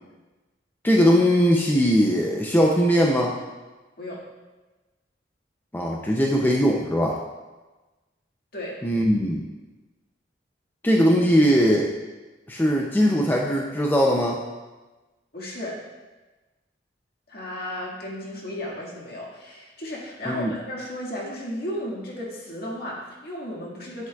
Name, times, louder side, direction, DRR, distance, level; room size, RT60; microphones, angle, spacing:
voice 1, 0.8-3.3 5.7-7.2 8.8-9.4 10.8-11.9 12.5-14.4 20.3-20.5, equal, 10° left, -1 dB, 0.5 m, -20 dB
voice 2, 15.3-15.8 17.3-24.1, left 1 dB, 60° left, -4 dB, 1.9 m, -34 dB
9.9 x 7.9 x 2.4 m, 1.2 s
head